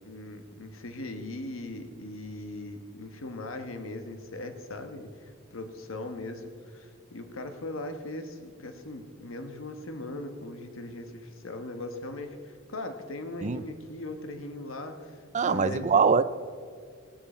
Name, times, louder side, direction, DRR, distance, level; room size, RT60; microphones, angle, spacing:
voice 1, 0.1-15.9, left 2 dB, 70° left, 1.3 m, -39 dB
voice 2, 15.3-16.2, right 5 dB, 35° right, 0.4 m, -23 dB
17.5 x 12.5 x 4.4 m
head